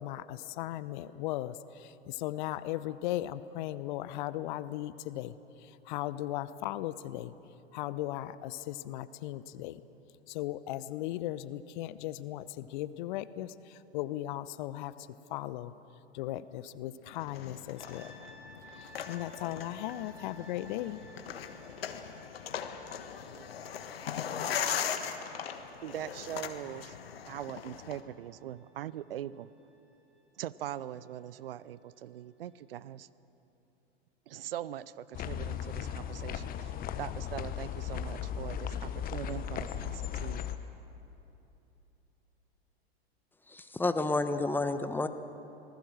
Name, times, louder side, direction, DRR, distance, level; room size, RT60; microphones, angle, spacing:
voice 1, 0.0-7.3 7.7-9.8 10.3-14.9 15.3-15.7 16.1-18.1 18.8-21.0, left 14 dB, 50° left, 16 dB, 0.8 m, -37 dB
sound 1, 17.1-28.0, left 8 dB, 65° left, 1.6 m, -39 dB
sound 2, 17.8-30.6, right 1 dB, 20° right, 7.0 m, -58 dB
voice 2, 25.8-26.9 27.3-29.5 30.4-33.1 34.3-40.5, right 12 dB, 60° right, 19 dB, 0.7 m, -41 dB
sound 3, 35.1-40.6, left 9 dB, 30° left, 1.1 m, -37 dB
voice 3, 43.5-45.1, left 2 dB, 5° left, 10 dB, 1.0 m, -30 dB
26.5 x 19.5 x 6.3 m, 3.0 s
figure-of-eight pair, 95°, 32 cm